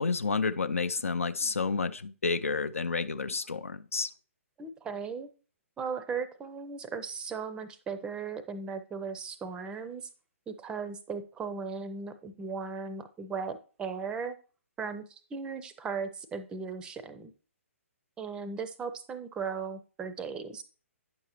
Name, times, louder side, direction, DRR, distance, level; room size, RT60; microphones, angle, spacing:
voice 1, 0.0-4.1, left 4 dB, 70° left, 0.4 m, -30 dB
voice 2, 4.6-5.3 5.8-10.1 10.5-14.4 14.8-17.3 18.2-20.6, right 5 dB, 10° right, 0.5 m, -37 dB
9.4 x 6.4 x 2.9 m
figure-of-eight pair, 125°, 8 cm